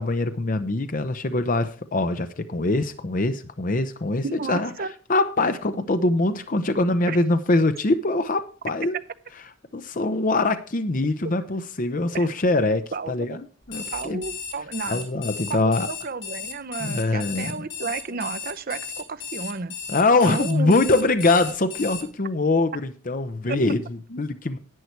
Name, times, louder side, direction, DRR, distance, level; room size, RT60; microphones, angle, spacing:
voice 1, 0.0-4.7 5.1-9.0 9.7-13.4 13.7-14.2 14.9-15.9 16.8-17.7 19.9-24.6, left 2 dB, 40° left, 9 dB, 0.7 m, -23 dB
voice 2, 4.2-4.9 7.1-7.2 12.1-12.3 12.9-13.4 13.9-15.1 15.5-19.8 20.2-21.1 23.5-23.6, right 4 dB, 45° right, 12 dB, 0.7 m, -32 dB
Alarm, 13.6-22.0, left 6 dB, 55° left, 2.3 m, -35 dB
11.0 x 8.2 x 4.5 m, 0.40 s
head